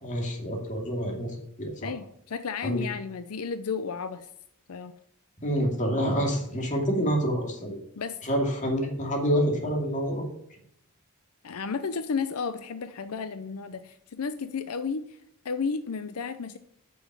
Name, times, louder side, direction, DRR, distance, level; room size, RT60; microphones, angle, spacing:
voice 1, 0.0-1.9 2.6-2.8 5.4-7.8 8.2-10.2, equal, 35° left, 1 dB, 2.4 m, -27 dB
voice 2, 1.8-4.3 4.7-4.9 8.0-8.2 11.4-15.2 15.4-16.6, left 5 dB, 85° left, 11 dB, 0.6 m, -33 dB
9.1 x 6.1 x 7.3 m, 0.70 s
head